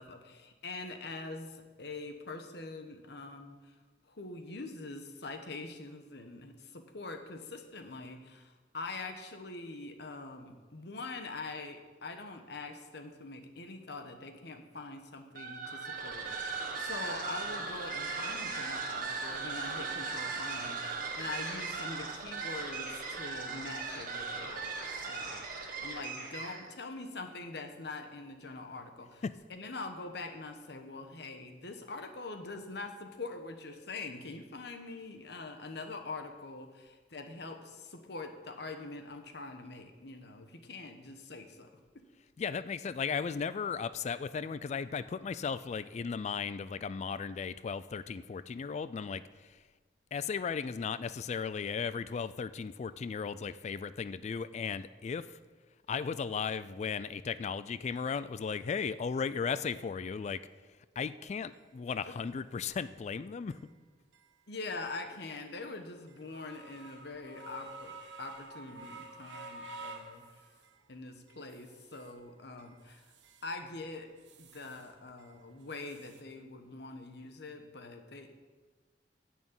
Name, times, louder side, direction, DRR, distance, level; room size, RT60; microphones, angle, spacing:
voice 1, 0.0-3.8 4.0-29.2 29.5-41.7 62.0-62.2 64.5-70.2 70.9-73.1 73.4-74.1 74.4-78.3, left 3 dB, 65° left, 6 dB, 1.1 m, -44 dB
sound 1, 15.3-26.7, right 4 dB, 50° right, 1.6 m, -38 dB
voice 2, 42.4-49.6 50.1-55.4 55.9-60.4 61.0-63.6, left 6 dB, 40° left, 15 dB, 0.3 m, -36 dB
sound 2, 61.5-61.6 62.2-62.3 62.8-62.9 63.5-63.6 64.1-64.3 64.8-64.9 65.4-65.5 66.1-70.8 71.3-72.2 72.6-73.5 73.9-74.9 75.2-76.2, right 3 dB, 90° right, 1.4 m, -50 dB
10.5 x 6.2 x 8.9 m, 1.4 s
head